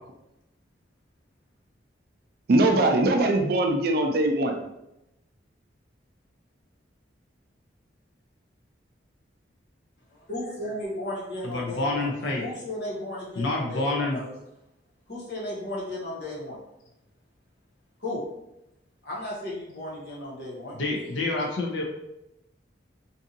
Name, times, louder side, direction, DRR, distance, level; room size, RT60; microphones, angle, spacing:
voice 1, 2.5-4.5, right 2 dB, 55° right, 3 dB, 0.4 m, -21 dB
voice 2, 10.3-12.1 12.4-14.2 15.1-16.6 18.0-18.2 19.0-20.8, left 1 dB, 60° left, -6 dB, 1.1 m, -34 dB
voice 3, 11.4-12.4 13.4-14.2 20.7-21.8, left 2 dB, 80° left, -1 dB, 0.6 m, -28 dB
2.7 x 2.5 x 2.6 m, 0.87 s
head